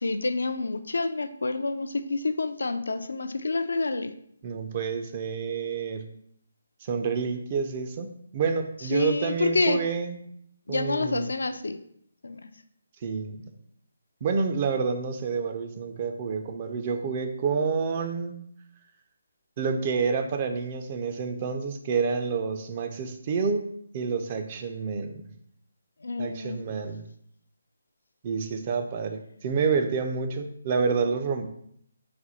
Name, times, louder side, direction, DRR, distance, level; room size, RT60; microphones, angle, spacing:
voice 1, 0.0-4.1 8.9-9.8 10.7-11.8 12.2-12.5 26.0-26.6, left 3 dB, 80° left, 9 dB, 0.3 m, -28 dB
voice 2, 4.4-6.0 6.8-8.1 8.3-10.3 10.7-11.3 13.0-13.4 14.2-18.4 19.6-23.7 23.9-25.2 26.2-27.0 28.2-31.5, right 5 dB, 35° right, 6 dB, 0.4 m, -28 dB
4.2 x 2.2 x 4.1 m, 0.68 s
hypercardioid pair, 155°, 0 cm